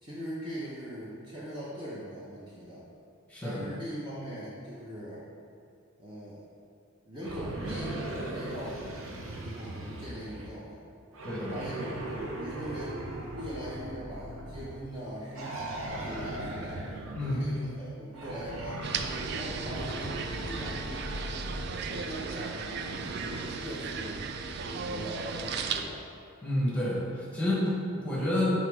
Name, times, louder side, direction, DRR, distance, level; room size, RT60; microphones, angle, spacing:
voice 1, 0.0-2.8 3.4-5.2 6.0-6.4 7.1-8.0 8.3-8.8 9.4-10.8 11.4-13.0 13.3-16.8 17.2-21.3 21.8-23.1 23.4-24.2 24.6-26.0, equal, 20° right, -8 dB, 0.7 m, -41 dB
voice 2, 3.3-3.6 11.2-11.5 12.1-12.2 17.1-17.5 26.4-28.6, left 1 dB, 5° left, -6 dB, 1.2 m, -29 dB
sound 1, 7.2-10.5 11.1-14.8 15.3-17.5 18.1-21.8 22.8-23.5, right 1 dB, 65° right, 0.7 m, -38 dB
sound 2, 18.8-25.8, right 5 dB, 50° right, 0.3 m, -36 dB
Bowed string instrument, 20.0-23.8, left 2 dB, 25° left, 0.3 m, -50 dB
5.8 x 3.7 x 4.7 m, 2.3 s
head